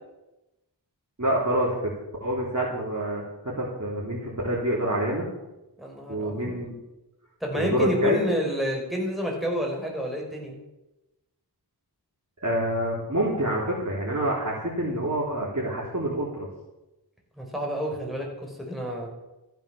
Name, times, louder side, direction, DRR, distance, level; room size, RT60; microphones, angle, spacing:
voice 1, 1.2-1.9 2.2-5.3 6.1-6.7 7.5-8.2 12.4-16.5, right 1 dB, 40° right, -6 dB, 3.7 m, -27 dB
voice 2, 5.8-6.5 7.4-10.5 17.4-19.1, equal, ahead, 0 dB, 5.4 m, -29 dB
14.5 x 9.0 x 7.2 m, 0.98 s
wide cardioid pair, 40°, 41 cm